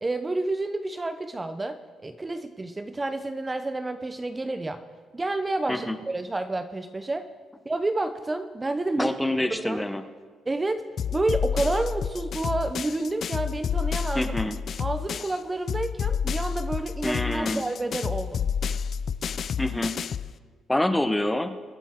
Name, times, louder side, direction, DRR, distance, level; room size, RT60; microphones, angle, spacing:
voice 1, 0.0-4.8 5.1-7.3 7.7-9.1 9.5-9.8 10.5-10.8 11.1-14.3 14.8-18.5, right 2 dB, 20° right, 9 dB, 0.7 m, -29 dB
voice 2, 9.0-10.1 14.1-14.6 17.0-17.6 19.6-20.0 20.7-21.6, left 1 dB, 10° left, 9 dB, 0.9 m, -26 dB
sound 1, 11.0-15.4 15.7-20.3, left 7 dB, 55° left, 0.4 m, -29 dB
24.0 x 9.0 x 3.7 m, 1.5 s
cardioid pair, 90°, 0 cm